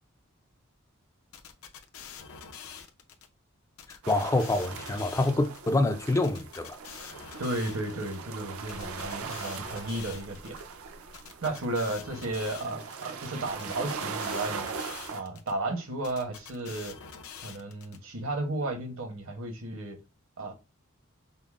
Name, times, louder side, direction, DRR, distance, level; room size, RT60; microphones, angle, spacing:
sound 1, 1.3-3.3 3.8-5.7 6.2-8.2 8.7-10.6 11.1-13.1 13.6-15.5 16.0-18.0, left 7 dB, 80° left, 0.6 m, -46 dB
sound 2, 4.0-15.2, right 5 dB, 90° right, 0.6 m, -40 dB
voice 1, 4.1-7.1, left 2 dB, 15° left, 0.3 m, -27 dB
voice 2, 7.4-10.6 11.4-14.7 15.1-17.0 17.4-20.0 20.4-20.5, right 2 dB, 70° right, 0.9 m, -33 dB
5.3 x 2.0 x 2.4 m
head